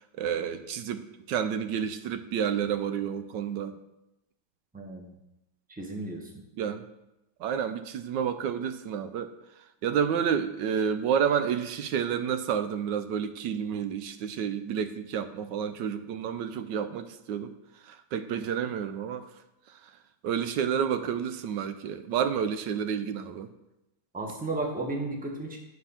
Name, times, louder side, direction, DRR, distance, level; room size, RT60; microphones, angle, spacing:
voice 1, 0.2-3.7 6.6-6.8 7.4-9.3 9.8-17.5 17.8-19.3 20.2-23.5, right 8 dB, 85° right, 10 dB, 1.3 m, -30 dB
voice 2, 4.7-5.1 5.7-6.4 24.1-25.6, right 2 dB, 5° right, 0 dB, 1.1 m, -34 dB
9.5 x 4.5 x 5.6 m, 0.90 s
omnidirectional pair, 1.9 m